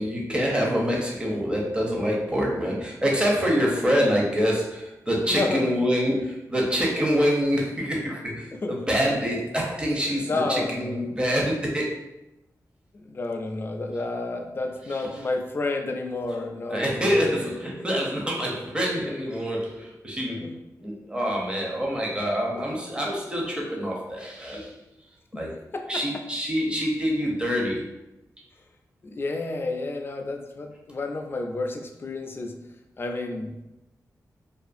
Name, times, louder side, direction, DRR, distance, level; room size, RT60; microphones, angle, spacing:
voice 1, 0.0-11.9 16.7-20.5 20.8-24.7 25.4-25.5 25.9-27.9, equal, 15° right, -2 dB, 0.6 m, -26 dB
voice 2, 5.3-5.6 8.5-8.7 10.1-11.0 13.0-17.3 20.4-20.5 25.3-25.4 25.7-25.8 29.0-32.5 33.0-33.6, left 3 dB, 35° left, 3 dB, 0.3 m, -30 dB
2.4 x 2.4 x 2.5 m, 0.92 s
wide cardioid pair, 105°, 7 cm